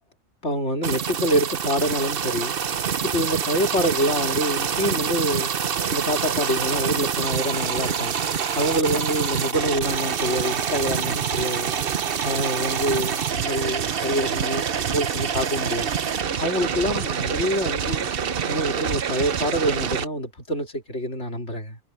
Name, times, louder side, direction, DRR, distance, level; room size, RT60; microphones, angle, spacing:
voice 1, 0.4-2.6 3.0-5.5 5.9-11.7 12.2-15.9 16.4-18.1 18.5-21.8, equal, 55° left, 3.5 m, -26 dB
sound 1, 0.8-20.0, right 7 dB, 50° right, 0.9 m, -26 dB
omnidirectional pair, 1.4 m